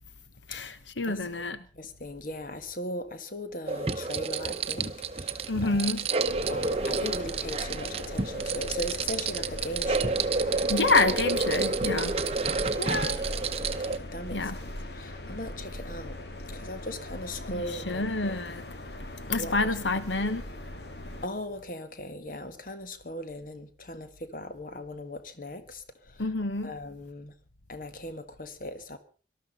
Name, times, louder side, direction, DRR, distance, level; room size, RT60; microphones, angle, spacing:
voice 1, 0.5-1.6 5.5-6.0 10.7-12.2 12.8-13.2 14.3-14.5 17.5-18.6 19.3-20.4 26.2-26.7, left 3 dB, 90° left, 1.2 m, -28 dB
voice 2, 1.6-5.9 6.5-10.2 13.1-16.1 16.5-18.1 19.4-19.8 20.2-20.3 21.2-26.3 26.6-27.3 27.7-29.0, left 1 dB, 50° left, 1.5 m, -39 dB
sound 1, 3.7-14.0, right 4 dB, 35° right, 0.8 m, -29 dB
sound 2, 6.3-21.3, left 1 dB, 70° left, 1.9 m, -40 dB
19.0 x 13.0 x 5.5 m
head